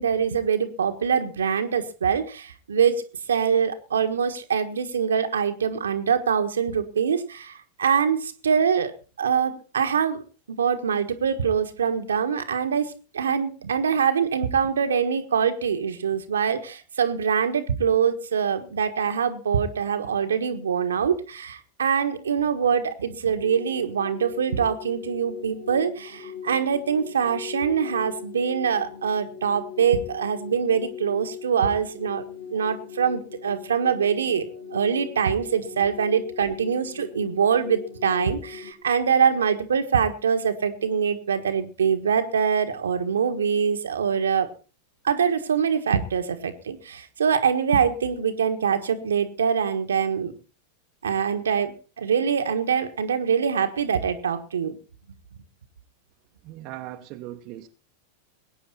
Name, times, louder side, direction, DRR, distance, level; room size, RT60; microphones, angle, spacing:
voice 1, 0.0-8.9 9.2-10.2 10.5-34.5 34.7-44.5 45.0-50.3 51.0-54.8, right 7 dB, 70° right, 7 dB, 1.5 m, -24 dB
sound 1, 23.4-38.7, left 7 dB, 70° left, 3.6 m, -40 dB
voice 2, 56.4-57.7, right 14 dB, 40° right, 4 dB, 1.2 m, -38 dB
22.0 x 9.3 x 4.3 m, 0.36 s
figure-of-eight pair, 90°, 0 cm